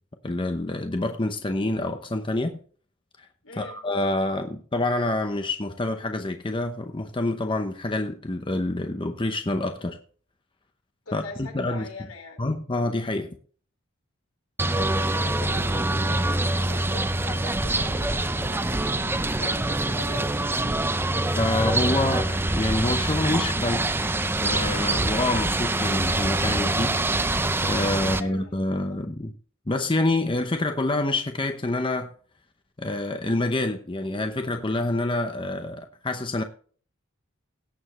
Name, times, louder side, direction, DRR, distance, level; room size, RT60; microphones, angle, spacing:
voice 1, 0.2-2.6 3.6-10.0 11.1-11.9 12.4-13.3 21.4-23.9 24.4-29.3 29.7-32.1 32.8-36.4, left 2 dB, 25° left, 0.8 m, -27 dB
voice 2, 3.4-3.8 11.1-12.4 14.7-20.7 28.0-29.0, left 2 dB, 80° left, 4.1 m, -42 dB
sound 1, 14.6-28.2, right 2 dB, 10° right, 0.5 m, -25 dB
17.5 x 7.0 x 3.1 m
head